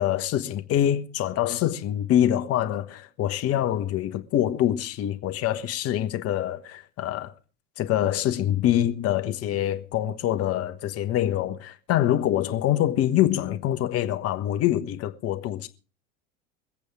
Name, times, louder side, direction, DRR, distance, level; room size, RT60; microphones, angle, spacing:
voice 1, 0.0-7.3 7.8-15.7, left 12 dB, 35° left, 1.3 m, -25 dB
22.0 x 8.4 x 4.8 m
figure-of-eight pair, 80°, 40 cm